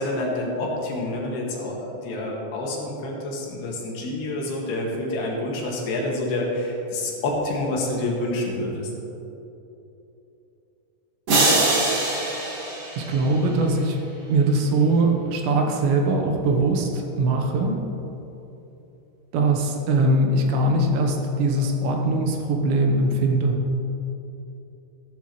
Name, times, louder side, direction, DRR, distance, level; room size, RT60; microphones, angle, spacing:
voice 1, 0.0-8.9, left 1 dB, 70° left, -2 dB, 3.7 m, -28 dB
sound 1, 11.3-13.6, right 2 dB, 45° right, 2.4 m, -23 dB
voice 2, 13.0-14.0 14.3-17.8 19.3-23.6, right 2 dB, 85° right, 2 dB, 3.5 m, -21 dB
14.5 x 12.5 x 3.3 m, 3.0 s
omnidirectional pair, 4.9 m